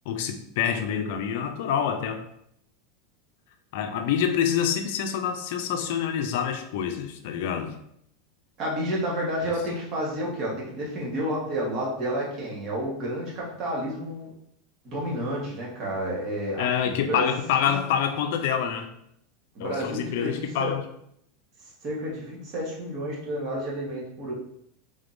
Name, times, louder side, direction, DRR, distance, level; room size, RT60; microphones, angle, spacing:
voice 1, 0.1-2.2 3.7-7.7 9.4-9.5 16.6-18.9 19.6-20.8, left 8 dB, 65° left, 7 dB, 0.5 m, -27 dB
voice 2, 8.6-14.3 14.8-17.3 17.6-17.8 19.5-20.7 21.6-24.3, equal, 40° right, -4 dB, 1.4 m, -30 dB
3.6 x 3.5 x 2.6 m, 0.72 s
supercardioid pair, 145°, 0 cm